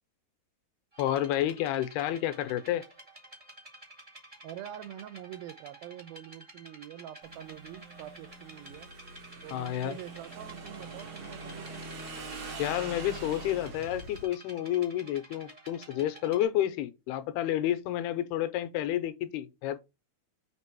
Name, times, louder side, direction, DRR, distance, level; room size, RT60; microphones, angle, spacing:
sound 1, 0.9-16.4, right 1 dB, 20° right, 0.9 m, -52 dB
voice 1, 1.0-2.8 9.5-10.0 12.6-19.8, left 12 dB, 85° left, 2.6 m, -30 dB
voice 2, 4.4-8.9 9.4-11.8, right 12 dB, 80° right, 2.3 m, -45 dB
Motorcycle / Engine, 7.2-14.2, right 3 dB, 60° right, 1.3 m, -44 dB
8.1 x 3.3 x 4.5 m
omnidirectional pair, 4.5 m